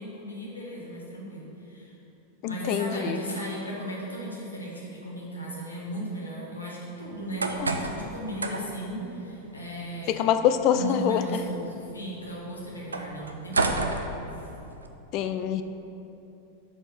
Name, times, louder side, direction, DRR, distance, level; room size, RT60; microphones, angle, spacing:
voice 1, 0.0-2.0 2.4-10.2 10.7-13.9 14.3-14.5, right 1 dB, 80° left, -4 dB, 1.3 m, -36 dB
voice 2, 2.4-3.2 7.6-7.8 10.1-11.4 15.1-15.6, left 9 dB, 40° left, 10 dB, 0.3 m, -25 dB
sound 1, 7.1-14.9, right 3 dB, 75° right, 0.4 m, -33 dB
5.0 x 4.3 x 5.9 m, 2.9 s
figure-of-eight pair, 90°, 0 cm